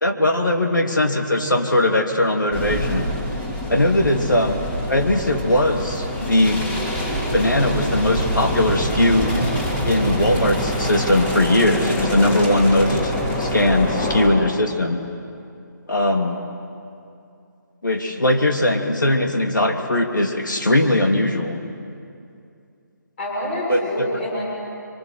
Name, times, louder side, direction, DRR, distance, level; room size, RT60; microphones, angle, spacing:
voice 1, 0.0-3.1 3.7-4.6 4.9-6.6 7.3-9.3 9.8-15.0 15.9-16.3 17.8-21.6 23.7-24.1, left 1 dB, 75° left, 3 dB, 2.9 m, -19 dB
sound 1, 2.5-14.3, equal, 10° left, 2.8 m, -25 dB
voice 2, 13.8-14.2 15.9-16.2 23.2-24.4, left 1 dB, 35° left, -4 dB, 7.2 m, -28 dB
28.0 x 24.0 x 8.0 m, 2.5 s
figure-of-eight pair, 145°, 10 cm